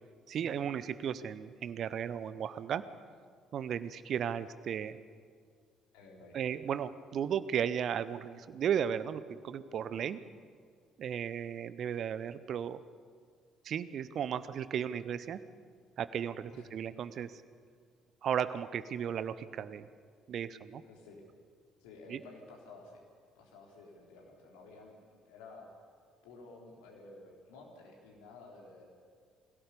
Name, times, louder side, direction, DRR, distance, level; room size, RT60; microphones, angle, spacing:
voice 1, 0.3-2.8 3.5-5.0 6.3-10.2 11.0-12.8 13.6-15.4 16.0-17.4 18.2-19.9 20.3-20.8 22.1-22.2, right 8 dB, 50° right, 15 dB, 0.7 m, -35 dB
voice 2, 5.9-6.6 16.5-16.7 20.8-21.2 21.8-23.0 23.4-25.7 26.2-28.9, left 3 dB, 65° left, 0 dB, 3.7 m, -53 dB
22.5 x 17.0 x 6.9 m, 2.1 s
figure-of-eight pair, 50°, 0 cm